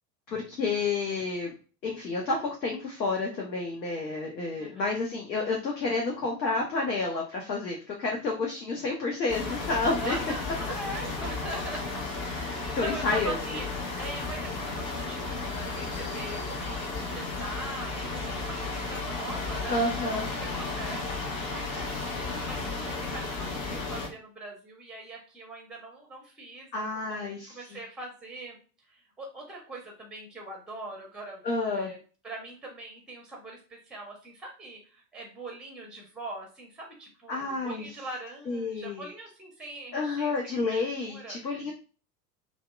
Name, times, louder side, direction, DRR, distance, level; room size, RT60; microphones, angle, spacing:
voice 1, 0.3-1.5 1.8-10.2 12.4-13.4 19.7-20.3 26.7-27.6 31.4-31.9 37.3-37.9 38.5-39.1 39.9-41.7, left 3 dB, 90° left, -1 dB, 0.7 m, -30 dB
voice 2, 4.6-4.9 10.0-12.0 12.3-13.7 14.0-28.6 28.9-31.4 31.7-32.0 32.2-40.3 40.7-41.4 41.6-41.7, right 2 dB, ahead, 1 dB, 0.6 m, -42 dB
sound 1, 9.3-24.1, left 3 dB, 35° left, 0.9 m, -34 dB
2.7 x 2.0 x 2.2 m, 0.37 s
figure-of-eight pair, 80°, 50 cm